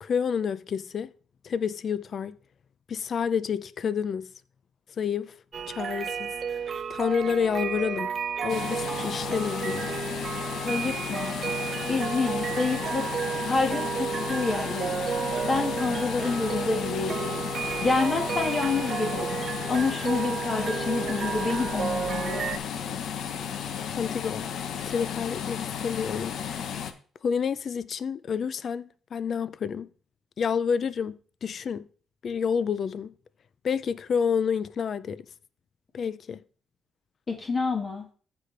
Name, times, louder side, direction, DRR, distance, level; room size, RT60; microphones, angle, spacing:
voice 1, 0.0-1.1 1.4-2.4 2.9-4.3 5.0-5.3 5.7-6.3 6.9-8.1 8.4-9.9 24.0-24.5 24.9-26.4 26.7-26.8 27.2-29.9 30.4-31.9 32.2-33.1 33.6-35.3 35.9-36.4, left 7 dB, 55° left, 0.5 m, -29 dB
sound 1, 5.5-22.6, right 6 dB, 50° right, 0.7 m, -32 dB
sound 2, 8.5-26.9, left 8 dB, 70° left, 0.9 m, -34 dB
voice 2, 10.6-11.3 11.9-13.1 13.4-15.1 15.5-17.4 17.8-19.4 19.7-22.5 37.3-38.1, left 4 dB, 35° left, 1.7 m, -28 dB
14.5 x 5.0 x 3.3 m
cardioid pair, 90°, 0 cm